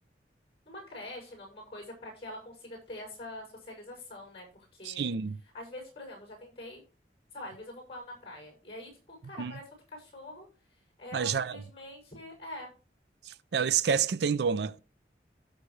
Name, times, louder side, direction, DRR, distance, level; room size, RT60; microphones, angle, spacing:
voice 1, 0.6-5.1 5.5-6.8 7.3-12.7, left 1 dB, 35° left, 6.2 m, -45 dB
voice 2, 4.9-5.4 9.4-9.5 11.1-11.6 13.5-14.8, right 6 dB, 70° right, 0.4 m, -28 dB
16.0 x 6.5 x 3.2 m
head